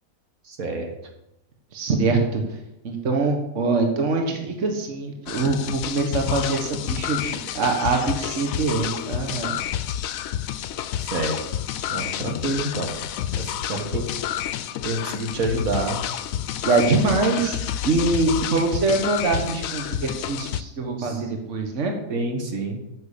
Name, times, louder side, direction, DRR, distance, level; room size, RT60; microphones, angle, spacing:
voice 1, 0.5-0.9 1.9-2.0 11.1-11.4 11.9-13.0 13.4-14.1 14.8-16.0 16.3-16.4 21.0-21.2 22.1-22.8, right 2 dB, 75° right, 3 dB, 2.1 m, -28 dB
voice 2, 1.7-2.6 2.8-9.6 16.6-21.9, right 3 dB, 55° right, 3 dB, 1.6 m, -24 dB
sound 1, 5.3-20.6, left 11 dB, 75° left, 1.0 m, -29 dB
9.4 x 7.3 x 6.8 m, 0.88 s
omnidirectional pair, 1.5 m